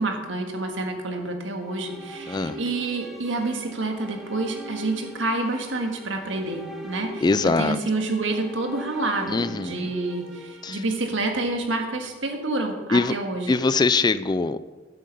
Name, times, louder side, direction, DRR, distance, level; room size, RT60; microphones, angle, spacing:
voice 1, 0.0-13.6, right 2 dB, 70° right, 4 dB, 1.7 m, -28 dB
sound 1, 1.4-11.6, right 1 dB, ahead, 1.5 m, -41 dB
voice 2, 2.3-2.6 7.2-7.8 9.3-9.9 10.6-10.8 12.9-13.1 13.5-14.6, left 3 dB, 20° left, 13 dB, 0.3 m, -22 dB
11.5 x 7.8 x 6.7 m, 1.2 s
head